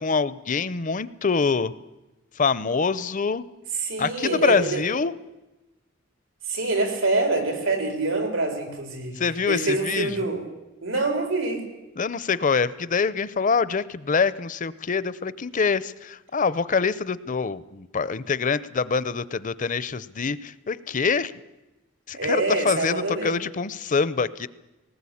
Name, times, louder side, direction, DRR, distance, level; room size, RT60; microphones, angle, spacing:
voice 1, 0.0-1.7 2.4-3.4 4.0-5.1 9.2-10.1 12.0-21.3 22.1-24.5, left 5 dB, 40° left, 17 dB, 0.6 m, -25 dB
voice 2, 3.8-4.8 6.5-9.2 9.5-10.4 10.8-11.6 22.1-23.4, right 2 dB, 90° right, 4 dB, 4.6 m, -25 dB
19.5 x 19.0 x 8.6 m, 1.0 s
head